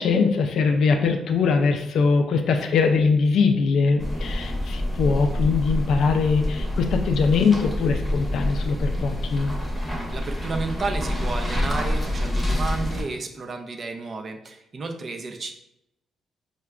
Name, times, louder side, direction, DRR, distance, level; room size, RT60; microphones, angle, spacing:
voice 1, 0.0-9.5, left 5 dB, 70° left, 5 dB, 0.3 m, -22 dB
sound 1, 4.0-13.0, left 1 dB, 5° left, 0.8 m, -27 dB
voice 2, 10.1-15.5, right 3 dB, 40° right, 5 dB, 0.4 m, -32 dB
4.7 x 2.2 x 2.3 m, 0.84 s
cardioid pair, 90°, 0 cm